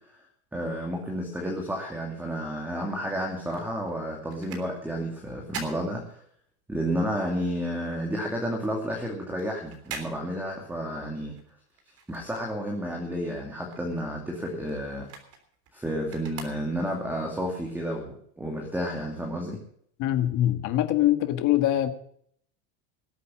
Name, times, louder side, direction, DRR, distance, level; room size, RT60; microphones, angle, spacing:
voice 1, 0.5-6.2 6.7-11.4 12.1-15.1 15.7-19.6, equal, 5° right, 2.5 m, -31 dB
sound 1, 3.0-6.7 7.1-13.0 13.3-17.1 17.7-17.8, right 5 dB, 30° right, 3.4 m, -45 dB
voice 2, 20.0-21.9, left 13 dB, 40° left, 1.8 m, -23 dB
20.0 x 8.3 x 6.3 m
supercardioid pair, 165°, 44 cm